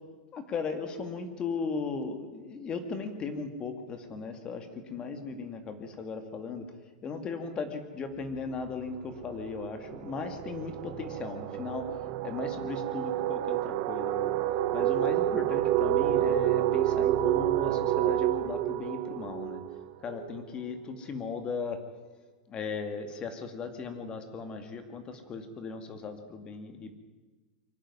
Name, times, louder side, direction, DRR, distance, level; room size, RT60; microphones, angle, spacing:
voice 1, 0.3-6.8 7.0-11.9 12.2-14.3 14.7-19.6 20.0-21.8 22.5-27.0, left 4 dB, 25° left, 7 dB, 2.3 m, -37 dB
sound 1, 8.3-8.5 8.8-20.4, right 13 dB, 45° right, 1.0 m, -29 dB
24.0 x 11.5 x 9.8 m, 1.3 s
supercardioid pair, 145°, 4 cm